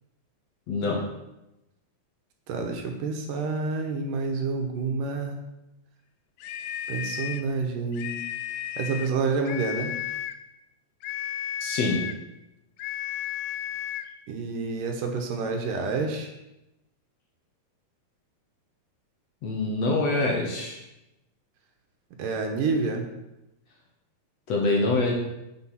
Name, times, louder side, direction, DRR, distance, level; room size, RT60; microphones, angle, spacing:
voice 1, 0.7-1.0 11.6-12.0 19.4-20.8 24.5-25.1, left 2 dB, 55° left, -1 dB, 2.3 m, -25 dB
voice 2, 2.5-5.5 6.9-8.2 8.8-9.9 14.3-16.3 22.2-23.1, right 4 dB, 70° right, 3 dB, 2.6 m, -28 dB
sound 1, 6.4-7.5 7.9-9.2 9.4-10.4 11.0-12.2 12.8-14.1, left 11 dB, 90° left, 1.8 m, -34 dB
9.1 x 7.7 x 5.7 m, 0.92 s
omnidirectional pair, 4.2 m